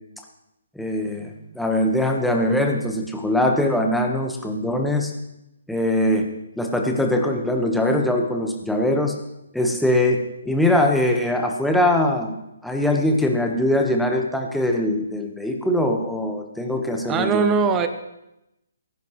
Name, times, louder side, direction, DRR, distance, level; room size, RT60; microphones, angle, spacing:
voice 1, 0.7-1.3 1.5-5.1 5.7-6.3 6.6-9.1 9.5-12.4 12.6-17.4, left 1 dB, ahead, 2 dB, 1.4 m, -22 dB
voice 2, 17.1-17.9, right 5 dB, 15° right, 9 dB, 0.8 m, -20 dB
19.5 x 11.0 x 3.2 m, 0.89 s
figure-of-eight pair, 140°, 0 cm